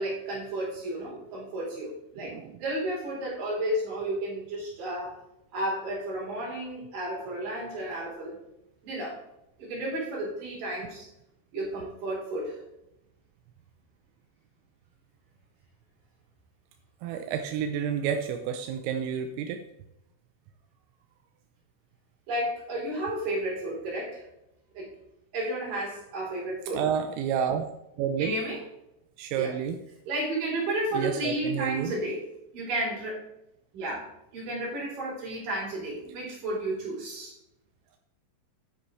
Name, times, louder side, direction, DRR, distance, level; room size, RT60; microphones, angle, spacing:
voice 1, 0.0-2.3 2.6-5.2 5.5-8.4 8.8-9.2 9.6-11.1 11.5-12.6 22.3-24.3 24.7-24.9 25.3-26.8 28.2-28.6 29.3-29.5 30.1-32.2 32.5-33.2 33.7-37.3, right 1 dB, 45° right, -5 dB, 4.9 m, -32 dB
voice 2, 2.2-2.5 17.0-19.6 26.7-27.6 28.0-28.3 29.2-29.8 30.9-31.9, right 8 dB, 85° right, 6 dB, 3.3 m, -30 dB
10.0 x 10.0 x 3.2 m, 0.88 s
omnidirectional pair, 5.9 m